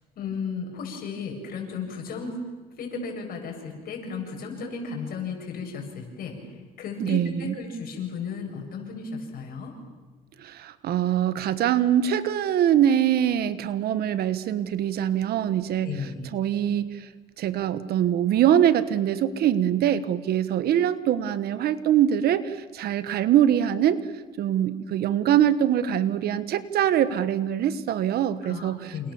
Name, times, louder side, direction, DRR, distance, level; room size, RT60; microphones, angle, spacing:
voice 1, 0.2-2.4 2.8-9.7 15.8-16.3 28.4-29.1, left 5 dB, 60° left, 2 dB, 7.9 m, -34 dB
voice 2, 7.0-7.5 10.4-15.9 16.3-17.1 17.4-24.1 24.4-29.1, right 10 dB, 70° right, 13 dB, 1.6 m, -23 dB
28.5 x 28.5 x 7.3 m, 1.3 s
cardioid pair, 110°, 17 cm